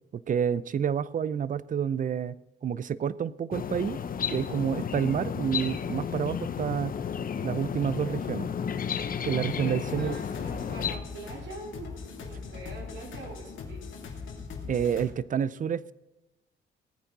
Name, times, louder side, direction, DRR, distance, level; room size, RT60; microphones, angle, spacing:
voice 1, 0.1-2.4 2.6-4.0 4.3-7.0 7.4-8.5 9.2-10.2 14.7-15.9, right 8 dB, 40° right, 19 dB, 0.6 m, -29 dB
sound 1, 3.5-11.0, left 7 dB, 45° left, 0.9 m, -33 dB
voice 2, 9.6-13.9, right 2 dB, 70° right, -2 dB, 4.8 m, -43 dB
sound 2, 9.8-15.1, left 5 dB, 75° left, 2.6 m, -41 dB
17.5 x 9.2 x 4.1 m, 1.0 s
cardioid pair, 90°, 20 cm